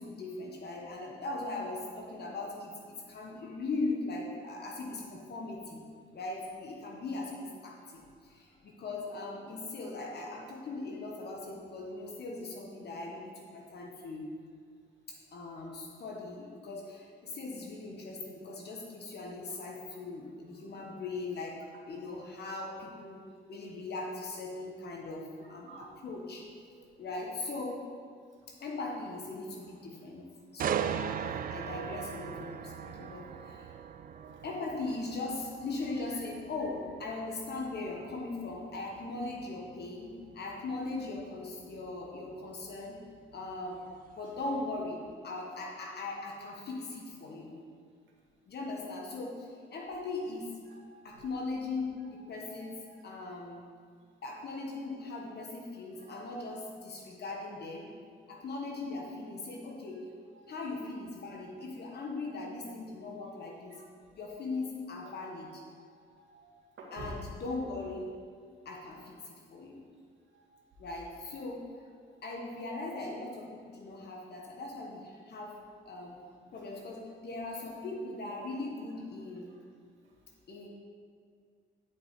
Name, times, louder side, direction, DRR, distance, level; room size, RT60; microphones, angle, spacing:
voice 1, 0.0-5.8 6.1-14.3 15.1-21.6 21.9-26.4 27.0-27.8 28.6-30.2 30.5-33.7 34.4-43.0 43.3-43.8 44.1-47.5 48.5-50.5 51.0-53.6 54.2-57.9 58.3-60.0 60.5-63.8 64.1-65.6 66.9-68.1 68.6-69.8 70.8-71.7 72.2-75.5 75.8-76.1 76.5-79.5 80.5-80.7, left 3 dB, 55° left, -1 dB, 1.4 m, -39 dB
voice 2, 25.4-25.9 32.7-33.4 34.1-34.4 44.4-44.5 45.4-45.5 50.7-50.8 51.1-51.3 52.4-52.6 52.9-53.0 56.1-56.2 60.3-60.4 66.1-67.1 70.3-70.5, right 3 dB, 70° right, -2 dB, 1.9 m, -52 dB
sound 1, 30.6-44.4 44.9-45.1, right 9 dB, 45° right, 0.4 m, -40 dB
10.0 x 5.9 x 4.7 m, 2.2 s
cardioid pair, 90°, 20 cm